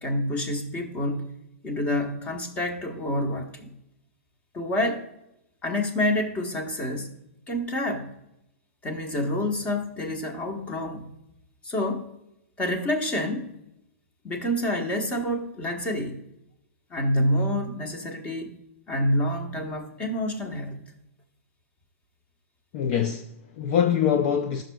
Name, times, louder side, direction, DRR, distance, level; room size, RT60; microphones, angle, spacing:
voice 1, 0.0-1.3 1.6-3.7 4.5-5.0 5.6-7.1 7.5-8.1 8.8-11.0 11.6-12.1 12.6-13.6 14.2-16.2 16.9-18.5 18.9-20.8, left 1 dB, 15° left, 1.1 m, -28 dB
voice 2, 22.7-24.6, left 8 dB, 35° left, 0.5 m, -24 dB
14.0 x 6.3 x 2.3 m
hypercardioid pair, 155°, 8 cm